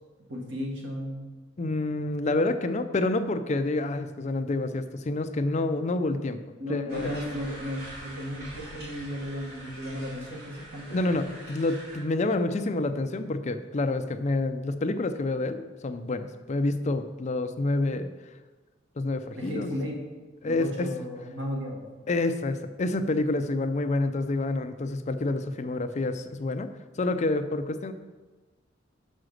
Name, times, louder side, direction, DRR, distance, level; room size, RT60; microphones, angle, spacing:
voice 1, 0.3-1.2 6.6-11.1 19.4-20.0 20.4-21.8, equal, 80° right, -1 dB, 1.8 m, -35 dB
voice 2, 1.6-7.1 10.9-18.1 19.0-19.8 20.4-20.9 22.1-26.7 27.0-27.9, left 2 dB, 40° left, 9 dB, 0.5 m, -28 dB
sound 1, 6.9-12.0, right 1 dB, 55° right, 2.6 m, -44 dB
6.3 x 4.9 x 6.4 m, 1.2 s
head